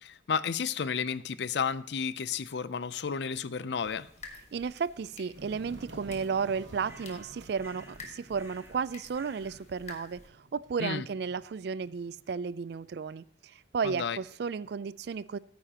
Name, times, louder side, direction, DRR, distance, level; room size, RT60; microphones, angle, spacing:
voice 1, 0.0-4.1 10.8-11.1 13.8-14.2, left 6 dB, 65° left, 17 dB, 0.5 m, -32 dB
sound 1, 3.7-10.3, left 3 dB, 35° left, 1.4 m, -51 dB
voice 2, 4.5-15.4, right 5 dB, 60° right, 19 dB, 0.3 m, -33 dB
sound 2, 5.3-12.2, right 1 dB, 80° right, 1.3 m, -51 dB
sound 3, 6.8-8.0 8.3-8.8 9.1-9.6, right 2 dB, 15° right, 1.4 m, -54 dB
14.0 x 9.4 x 2.9 m, 0.64 s
head